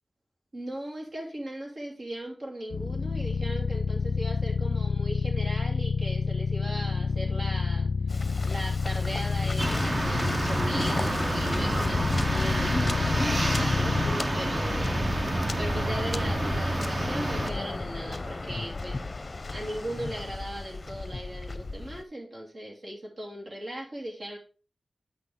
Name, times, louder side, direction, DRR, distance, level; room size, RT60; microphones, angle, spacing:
voice 1, 0.5-7.9 8.4-15.0 15.6-19.0 19.5-24.4, right 1 dB, 60° right, -1 dB, 3.0 m, -38 dB
sound 1, 2.7-14.2, left 5 dB, 80° left, 0.3 m, -29 dB
Waves surf, 8.1-22.0, left 3 dB, 35° left, 0.6 m, -34 dB
sound 2, 9.6-17.5, right 1 dB, 30° right, 0.9 m, -29 dB
8.6 x 6.1 x 3.6 m, 0.36 s
wide cardioid pair, 90°, 0 cm